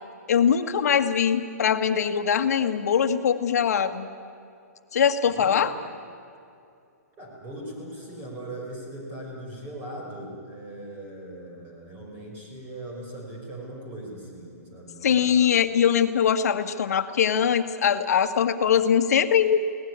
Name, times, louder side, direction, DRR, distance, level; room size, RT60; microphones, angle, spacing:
voice 1, 0.3-4.1 4.9-5.7 15.0-19.6, left 8 dB, 65° left, 8 dB, 1.6 m, -22 dB
voice 2, 5.3-5.6 7.2-15.5, right 1 dB, 25° right, -1 dB, 5.5 m, -39 dB
22.5 x 18.0 x 9.6 m, 2.4 s
hypercardioid pair, 150°, 9 cm